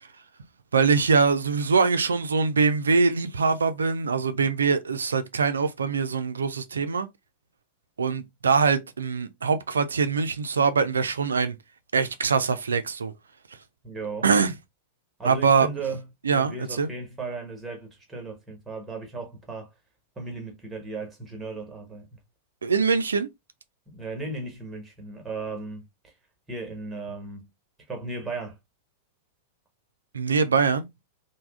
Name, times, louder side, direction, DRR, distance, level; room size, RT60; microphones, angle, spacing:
voice 1, 0.7-7.1 8.0-11.5 11.9-13.1 14.2-14.5 15.2-15.7 16.2-16.9 22.6-23.3 30.1-30.9, right 5 dB, 70° right, 0.3 m, -23 dB
voice 2, 13.8-14.3 15.2-16.0 16.3-19.7 20.2-22.2 23.9-26.1 26.5-27.5 27.9-28.6, right 3 dB, 10° right, 1.2 m, -36 dB
3.3 x 2.0 x 2.3 m
figure-of-eight pair, 90°, 0 cm